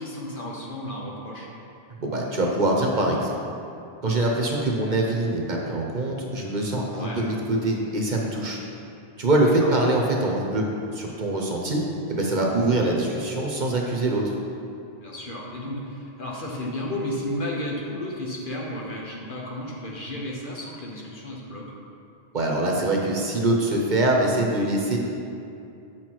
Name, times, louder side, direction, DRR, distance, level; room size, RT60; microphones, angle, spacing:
voice 1, 0.0-1.5 6.9-7.3 9.4-9.7 15.0-21.7, left 1 dB, 55° left, -3 dB, 1.4 m, -33 dB
voice 2, 2.0-3.3 4.0-8.6 9.2-10.7 10.9-11.8 12.1-14.4 22.3-25.0, right 2 dB, 50° right, -1 dB, 1.0 m, -24 dB
8.1 x 6.2 x 4.6 m, 2.6 s
omnidirectional pair, 1.0 m